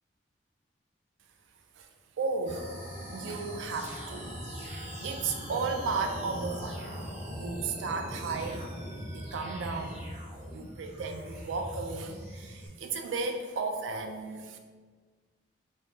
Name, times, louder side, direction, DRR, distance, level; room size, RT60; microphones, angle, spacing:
voice 1, 2.2-2.7 3.1-4.3 4.6-6.9 7.4-8.7 9.1-10.1 10.5-14.6, right 4 dB, 90° right, 5 dB, 0.3 m, -34 dB
sound 1, 2.4-12.7, equal, 35° right, 1.1 m, -41 dB
3.3 x 2.1 x 2.7 m, 1.5 s
head